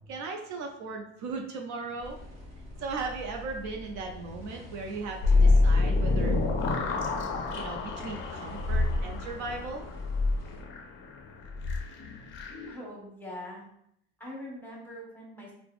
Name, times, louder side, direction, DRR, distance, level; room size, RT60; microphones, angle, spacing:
voice 1, 0.1-2.2 2.8-6.4 7.6-9.8, right 3 dB, 60° right, 3 dB, 0.4 m, -37 dB
sound 1, 2.0-10.6, equal, 20° right, 1.2 m, -45 dB
sound 2, 5.2-12.7, left 3 dB, 35° left, 0.4 m, -27 dB
voice 2, 12.7-13.6 14.2-15.5, left 1 dB, 5° left, -3 dB, 0.8 m, -42 dB
3.2 x 2.0 x 2.4 m, 0.74 s
cardioid pair, 125°, 33 cm